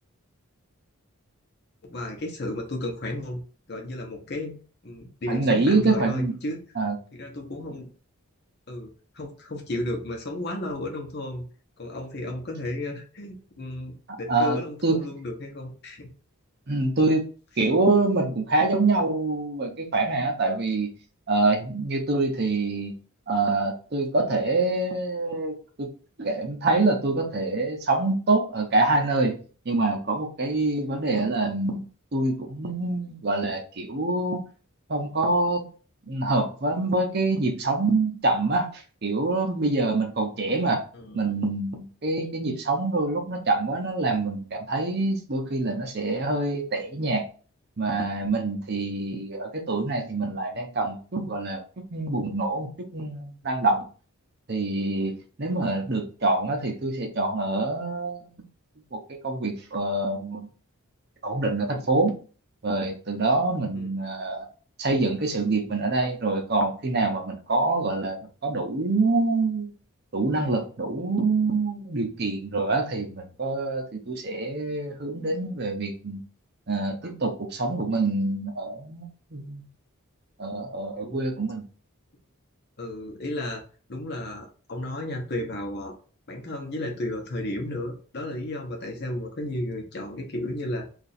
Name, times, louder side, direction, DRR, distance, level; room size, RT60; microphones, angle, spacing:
voice 1, 1.8-3.4 3.7-4.5 4.8-6.6 7.1-7.9 8.7-8.9 9.1-11.5 11.8-16.1 40.9-41.4 63.7-63.9 81.0-81.2 82.8-83.6 83.9-85.9 86.3-90.9, left 1 dB, 50° left, 2 dB, 0.8 m, -33 dB
voice 2, 5.3-6.4 6.8-7.0 14.3-15.0 16.7-17.3 17.6-20.9 21.3-22.9 23.3-29.4 29.7-34.5 34.9-35.7 36.1-40.8 41.1-47.2 47.8-51.6 51.9-53.9 54.5-58.4 58.9-59.0 59.2-60.5 61.2-62.1 62.6-64.5 64.8-69.7 70.1-76.2 76.7-79.7 80.4-81.6, right 2 dB, 45° right, 3 dB, 0.7 m, -25 dB
2.9 x 2.5 x 4.1 m, 0.39 s
head